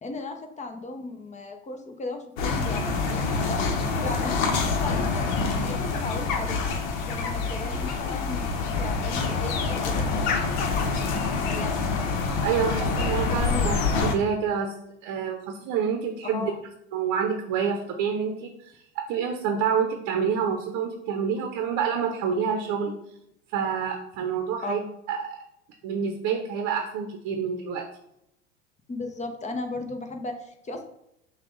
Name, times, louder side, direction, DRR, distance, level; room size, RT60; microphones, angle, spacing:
voice 1, 0.0-3.7 4.0-6.7 7.0-8.5 8.8-11.8 13.2-13.7 16.3-16.6 24.6-24.7 28.9-30.8, left 3 dB, 20° left, 6 dB, 0.7 m, -36 dB
sound 1, 2.4-14.2, left 4 dB, 65° left, 0.9 m, -26 dB
voice 2, 12.4-14.7 15.0-16.5 16.9-18.8 19.1-22.9 23.5-25.4 25.8-27.9, right 7 dB, 50° right, 4 dB, 0.8 m, -27 dB
5.8 x 2.4 x 3.9 m, 0.78 s
hypercardioid pair, 85°, 37 cm